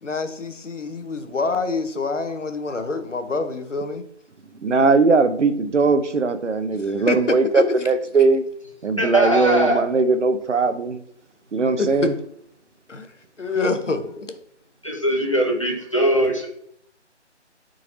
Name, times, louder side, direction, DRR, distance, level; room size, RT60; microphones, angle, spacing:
voice 1, 0.0-4.0 6.8-7.2 7.5-7.6 11.8-12.1 12.9-13.1 13.4-14.3, left 3 dB, 85° left, 9 dB, 0.8 m, -26 dB
voice 2, 4.6-8.4 8.8-11.0 11.5-12.1, right 4 dB, 75° right, 10 dB, 0.6 m, -19 dB
voice 3, 9.0-9.8 14.8-16.5, right 1 dB, 25° left, 0 dB, 0.7 m, -21 dB
3.7 x 3.1 x 3.8 m, 0.69 s
figure-of-eight pair, 160°, 36 cm